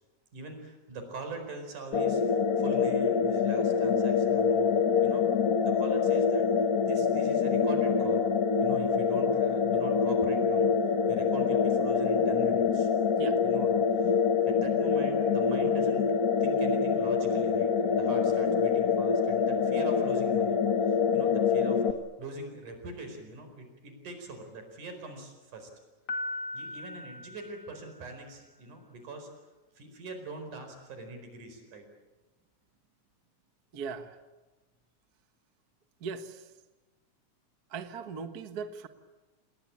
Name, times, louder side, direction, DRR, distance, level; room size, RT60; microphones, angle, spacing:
voice 1, 0.3-5.2 5.6-6.4 6.8-8.3 8.6-12.9 13.4-14.2 14.5-16.1 16.4-20.6 20.9-21.8 22.2-25.7 26.5-29.3 29.8-31.9, right 2 dB, 85° right, 6 dB, 6.2 m, -43 dB
sound 1, 1.9-21.9, left 6 dB, 70° left, 0.8 m, -25 dB
Piano, 26.1-28.2, left 2 dB, 35° left, 2.7 m, -38 dB
voice 2, 33.7-34.2 36.0-36.4 37.7-38.9, right 5 dB, 45° right, 8 dB, 1.4 m, -39 dB
28.0 x 20.5 x 8.7 m, 1.2 s
omnidirectional pair, 3.5 m